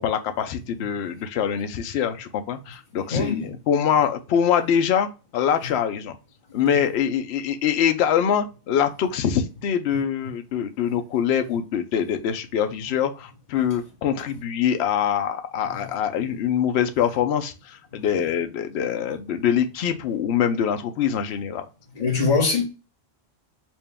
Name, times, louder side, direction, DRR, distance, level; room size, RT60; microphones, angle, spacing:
voice 1, 0.0-5.1 5.3-6.2 6.5-21.6, left 8 dB, 75° left, 0.8 m, -24 dB
voice 2, 3.1-3.5 22.0-22.6, left 4 dB, 45° left, 1.3 m, -22 dB
4.4 x 2.2 x 3.4 m
omnidirectional pair, 1.1 m